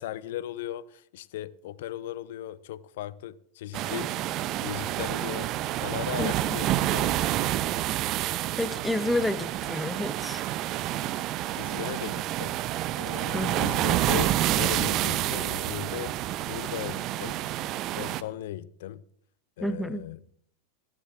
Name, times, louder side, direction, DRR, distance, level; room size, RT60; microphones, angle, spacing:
voice 1, 0.0-4.2 4.6-5.5 5.8-7.3 11.6-12.6 13.0-16.2 16.5-17.4 18.0-19.0 19.6-20.2, left 12 dB, 60° left, 0.5 m, -37 dB
sound 1, 3.7-18.2, right 14 dB, 40° right, 0.6 m, -28 dB
voice 2, 6.2-6.6 8.6-10.4 13.3-13.7 19.6-20.0, left 1 dB, 5° left, 0.7 m, -30 dB
27.5 x 10.0 x 2.4 m
figure-of-eight pair, 85°, 0 cm